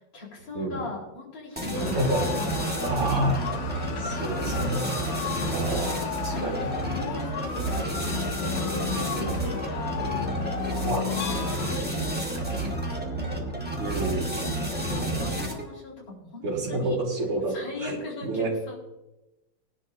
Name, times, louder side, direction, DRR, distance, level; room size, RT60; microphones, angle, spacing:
voice 1, 0.1-2.6 2.9-3.1 3.8-5.8 6.3-10.2 11.1-13.3 14.4-17.0 17.5-18.8, left 3 dB, 60° left, -7 dB, 5.2 m, -40 dB
sound 1, 1.6-15.8, right 1 dB, 5° right, 1.4 m, -30 dB
sound 2, 1.7-11.7, left 8 dB, 85° left, 2.2 m, -34 dB
voice 2, 1.7-2.2 2.5-2.6 2.8-3.4 4.0-4.9 5.5-6.6 9.1-9.4 10.8-11.2 13.8-14.5 16.4-18.5, right 2 dB, 85° right, -5 dB, 3.4 m, -29 dB
20.0 x 10.5 x 2.8 m, 0.98 s
omnidirectional pair, 2.4 m